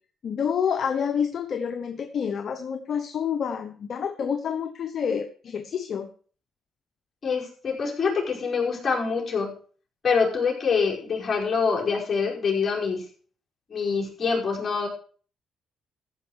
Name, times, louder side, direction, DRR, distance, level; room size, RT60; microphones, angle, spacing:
voice 1, 0.2-6.1, left 7 dB, 55° left, 7 dB, 1.0 m, -28 dB
voice 2, 7.2-9.5 10.0-13.0 13.7-14.9, left 5 dB, 40° left, -2 dB, 5.2 m, -25 dB
14.5 x 5.5 x 6.4 m, 0.43 s
cardioid pair, 90°, 0 cm